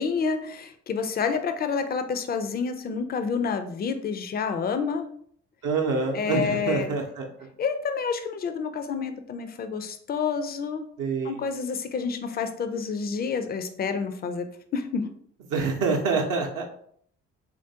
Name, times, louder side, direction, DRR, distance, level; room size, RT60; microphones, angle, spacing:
voice 1, 0.0-5.1 6.1-6.9 7.6-10.9 11.2-14.5 14.7-15.1, left 5 dB, 25° left, 9 dB, 0.4 m, -29 dB
voice 2, 5.6-7.3 11.0-11.4 15.5-16.7, right 4 dB, 60° right, 2 dB, 0.7 m, -26 dB
3.2 x 2.5 x 2.7 m, 0.62 s
hypercardioid pair, 45°, 37 cm